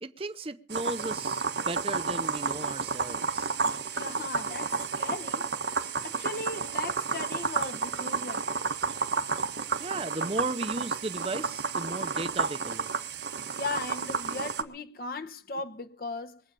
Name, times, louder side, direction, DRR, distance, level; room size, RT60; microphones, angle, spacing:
voice 1, 0.0-3.6 9.8-12.9, right 2 dB, 30° right, 0.7 m, -35 dB
sound 1, 0.7-14.6, right 5 dB, 85° right, 1.5 m, -31 dB
voice 2, 3.9-5.5 6.0-8.6 13.6-16.4, left 3 dB, 55° left, 1.0 m, -37 dB
21.5 x 8.7 x 6.9 m
head